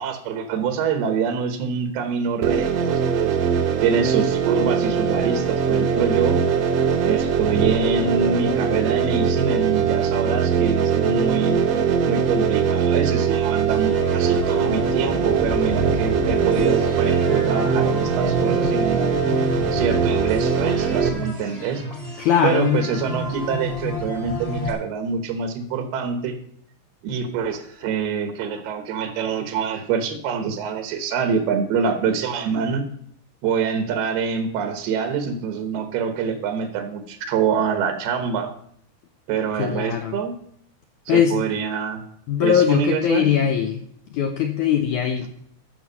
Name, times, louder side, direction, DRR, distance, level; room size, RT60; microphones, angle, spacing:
voice 1, 0.0-3.4 3.8-6.4 7.0-11.6 12.1-19.2 19.7-21.8 22.4-26.4 27.0-32.9 33.4-38.5 39.3-40.4 41.1-42.0 42.4-43.2, right 6 dB, 90° right, 7 dB, 3.2 m, -25 dB
sound 1, 2.4-21.1, right 6 dB, 75° right, 1.6 m, -21 dB
sound 2, 13.7-24.7, equal, 20° left, 1.1 m, -30 dB
voice 2, 22.2-22.8 39.6-40.2 41.1-41.4 42.3-43.8 44.1-45.5, left 8 dB, 80° left, 5 dB, 1.7 m, -21 dB
13.0 x 6.2 x 5.5 m, 0.67 s
omnidirectional pair, 4.4 m